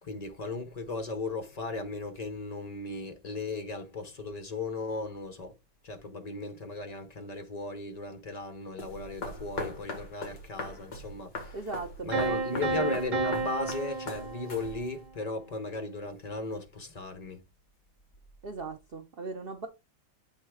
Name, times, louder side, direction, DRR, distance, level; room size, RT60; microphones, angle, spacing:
voice 1, 0.0-5.6 5.8-11.6 12.0-17.4, left 3 dB, 70° left, 0.3 m, -36 dB
sound 1, 8.8-15.1, left 2 dB, 55° left, 2.6 m, -41 dB
voice 2, 11.5-12.9 18.4-19.7, right 4 dB, 65° right, 0.5 m, -37 dB
Piano, 12.1-15.0, right 3 dB, 25° right, 2.1 m, -32 dB
8.2 x 3.4 x 4.8 m
omnidirectional pair, 2.2 m